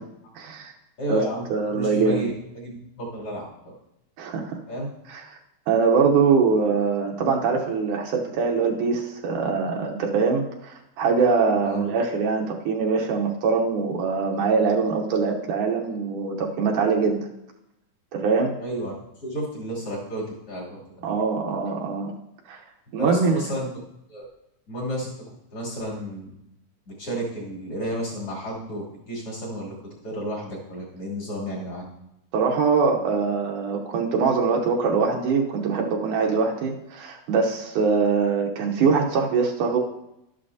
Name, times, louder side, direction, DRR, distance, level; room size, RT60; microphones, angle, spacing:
voice 1, 0.4-0.7 1.1-1.2 1.5-2.3 4.2-4.6 5.1-5.4 5.7-17.3 18.1-18.6 21.0-22.1 22.5-22.6 22.9-23.4 32.3-39.8, right 5 dB, 75° right, 1 dB, 2.4 m, -23 dB
voice 2, 1.0-1.4 1.7-3.4 4.7-4.9 11.6-11.8 18.6-18.9 19.2-21.1 23.0-23.7 24.1-24.2 24.7-25.1 25.5-26.3 26.9-31.8, equal, 45° left, -4 dB, 3.7 m, -31 dB
12.5 x 11.0 x 2.7 m, 0.85 s
omnidirectional pair, 3.7 m